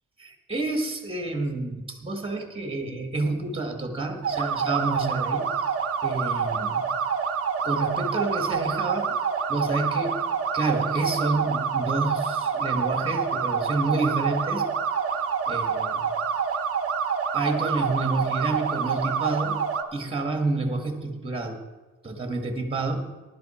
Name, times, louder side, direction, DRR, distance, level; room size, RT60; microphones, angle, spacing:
voice 1, 0.2-5.5 6.0-6.8 7.6-9.1 9.5-10.2 10.5-14.7 15.5-16.1 17.3-19.6 19.9-21.6 22.0-23.0, right 2 dB, 15° right, 5 dB, 1.9 m, -29 dB
sound 1, 4.2-19.8, right 6 dB, 40° right, 1.1 m, -27 dB
15.5 x 11.5 x 4.4 m, 1.3 s
cardioid pair, 145°, 34 cm